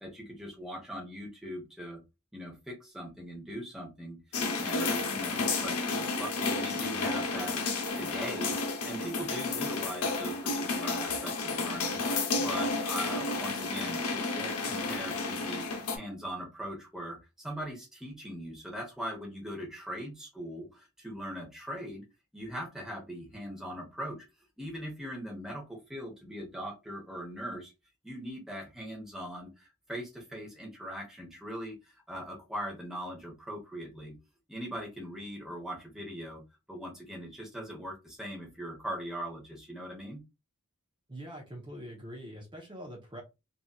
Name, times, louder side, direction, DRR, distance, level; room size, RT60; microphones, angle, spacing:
voice 1, 0.0-2.0 2.3-7.5 7.9-8.6 8.8-15.7 16.0-22.0 22.3-24.3 24.6-27.7 28.0-34.1 34.5-36.4 36.7-40.2, equal, ahead, 0 dB, 0.9 m, -40 dB
sound 1, 4.3-16.0, left 3 dB, 90° left, 0.7 m, -31 dB
voice 2, 41.1-43.2, equal, 20° right, -2 dB, 0.7 m, -44 dB
3.1 x 2.6 x 2.3 m, 0.25 s
head